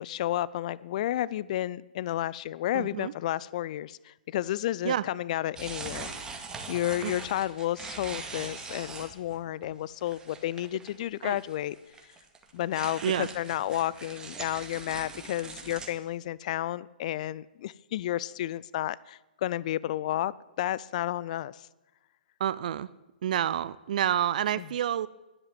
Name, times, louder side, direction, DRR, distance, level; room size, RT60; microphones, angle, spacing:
voice 1, 0.0-6.1 6.7-11.8 12.5-20.3 20.6-21.7 24.6-24.7, left 13 dB, 50° left, 21 dB, 0.4 m, -31 dB
voice 2, 2.7-3.1 4.8-5.0 7.0-7.1 11.2-11.4 13.0-13.3 22.4-22.9 23.2-25.1, right 10 dB, 55° right, 18 dB, 0.5 m, -28 dB
sound 1, 5.6-9.4 9.6-9.7 10.0-11.1 11.4-15.9, right 4 dB, 15° right, 2.1 m, -41 dB
11.0 x 10.5 x 9.1 m, 1.0 s
hypercardioid pair, 125°, 5 cm